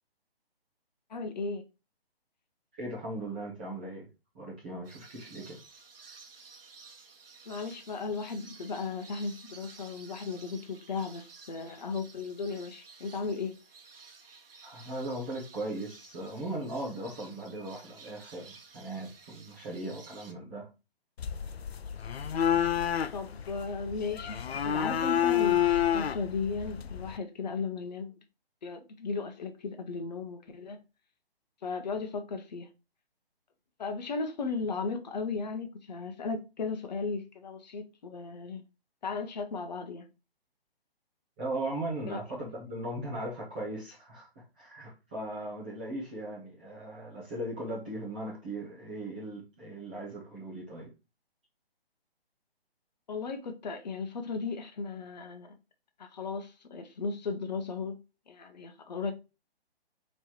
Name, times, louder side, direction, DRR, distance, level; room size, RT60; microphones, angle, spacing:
voice 1, 1.1-1.6 7.5-13.5 23.1-24.4 24.6-28.2 28.6-30.8 31.6-32.7 33.8-38.6 39.0-40.1 42.1-42.2 53.1-55.6 56.0-58.0 58.3-59.1, left 4 dB, 45° left, 0.8 m, -36 dB
voice 2, 2.8-4.1 4.3-5.6 14.6-20.7 41.4-50.9, right 1 dB, 10° right, 0.5 m, -38 dB
sound 1, 4.8-20.3, right 4 dB, 65° right, 0.9 m, -53 dB
sound 2, 21.2-27.2, left 9 dB, 80° left, 0.5 m, -29 dB
3.3 x 3.1 x 4.2 m
figure-of-eight pair, 145°, 31 cm